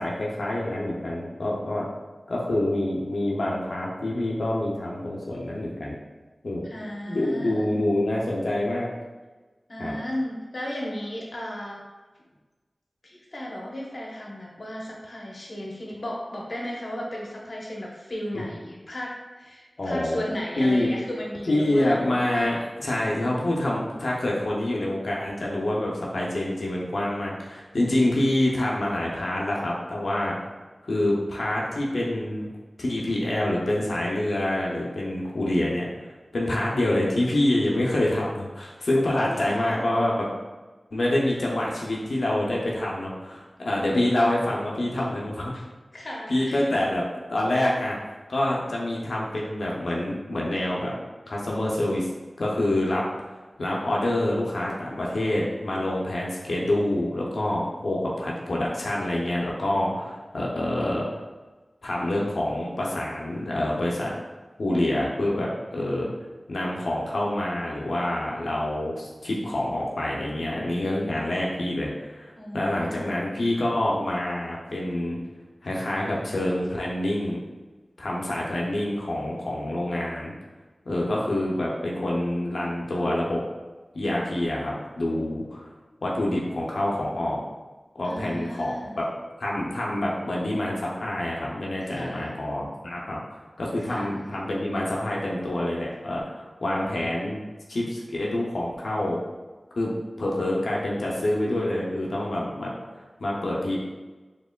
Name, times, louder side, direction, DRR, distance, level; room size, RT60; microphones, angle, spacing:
voice 1, 0.0-1.9 2.3-6.0 6.4-6.7 7.1-8.9 9.8-9.9 18.3-18.4 19.8-20.2 20.6-20.9 21.5-30.4 30.8-32.5 32.8-35.9 36.3-40.3 40.9-45.6 46.3-47.0 47.3-48.0 48.3-50.9 51.3-52.1 52.4-61.2 61.8-64.1 64.6-66.1 66.5-75.2 75.6-77.4 78.0-80.3 80.9-83.4 83.9-85.7 86.0-87.4 87.9-89.1 89.4-97.4 97.7-99.2 99.8-99.9 100.2-103.8, left 1 dB, 90° left, -4 dB, 0.5 m, -26 dB
voice 2, 6.6-7.7 9.7-11.8 13.0-22.0 22.3-22.5 39.1-39.9 45.9-46.8 72.4-73.2 88.0-89.0 91.8-92.3 93.9-94.2, left 1 dB, 65° left, -2 dB, 0.8 m, -35 dB
4.2 x 3.0 x 2.2 m, 1.2 s
wide cardioid pair, 50°, 0 cm